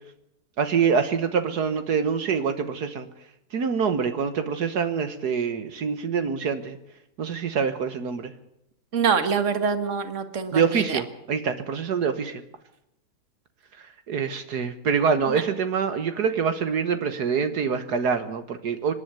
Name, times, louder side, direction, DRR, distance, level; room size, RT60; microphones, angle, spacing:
voice 1, 0.6-3.1 3.5-6.8 7.2-8.3 10.5-12.4 13.8-18.9, right 6 dB, 80° right, 9 dB, 1.8 m, -25 dB
voice 2, 8.9-11.0 15.3-15.4, right 6 dB, 50° right, 10 dB, 2.0 m, -25 dB
25.5 x 11.0 x 9.1 m, 0.81 s
omnidirectional pair, 1.7 m